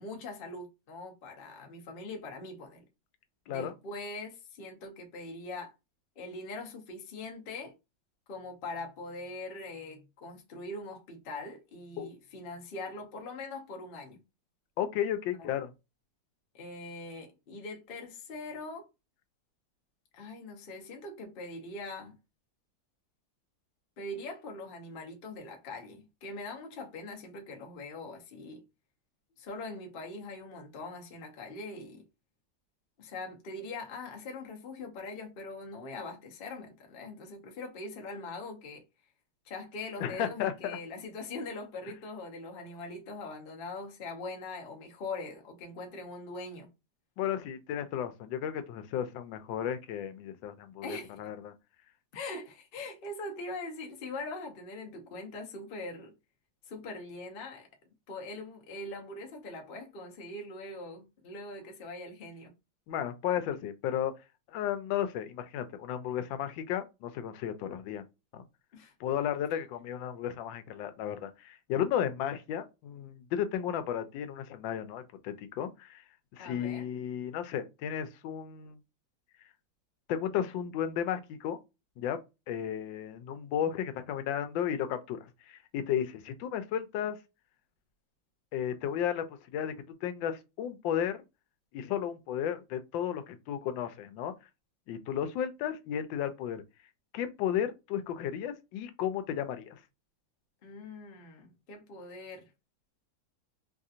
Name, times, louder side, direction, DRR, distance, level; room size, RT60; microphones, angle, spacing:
voice 1, 0.0-2.8 3.5-5.7 6.2-7.7 8.3-14.2 15.4-15.5 16.5-18.9 20.1-22.2 24.0-28.6 29.4-32.0 33.0-38.8 39.4-46.7 50.8-51.2 52.1-56.1 56.6-57.7 58.1-62.5 68.7-68.9 76.4-76.9 100.6-102.5, left 2 dB, 55° left, 0.6 m, -42 dB
voice 2, 14.8-15.7 40.0-40.8 47.2-51.5 62.9-64.1 64.5-68.0 68.3-68.4 69.0-76.0 76.3-78.8 80.1-81.6 82.0-82.2 82.5-87.2 88.5-89.2 89.5-89.7 90.0-91.2 91.7-94.3 94.9-96.6 97.1-99.8, left 9 dB, 85° left, 1.3 m, -34 dB
3.2 x 2.7 x 2.4 m
omnidirectional pair, 2.0 m